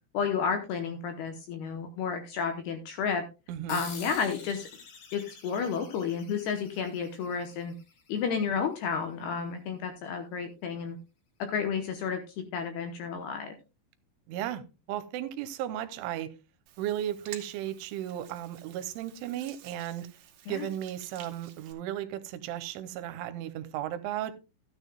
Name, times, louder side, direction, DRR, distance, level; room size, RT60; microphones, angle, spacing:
voice 1, 0.1-3.2 3.7-4.7 5.1-7.7 8.1-11.0 11.4-13.6 20.5-20.7, left 6 dB, 75° left, 7 dB, 2.5 m, -31 dB
voice 2, 3.5-3.8 14.3-16.3 16.8-20.1 20.5-24.3, right 12 dB, 90° right, 11 dB, 3.2 m, -35 dB
sound 1, 3.7-8.7, left 5 dB, 55° left, 3.7 m, -48 dB
Hands, 16.7-21.7, right 10 dB, 65° right, 2.6 m, -51 dB
14.5 x 9.6 x 2.3 m, 0.28 s
omnidirectional pair, 5.5 m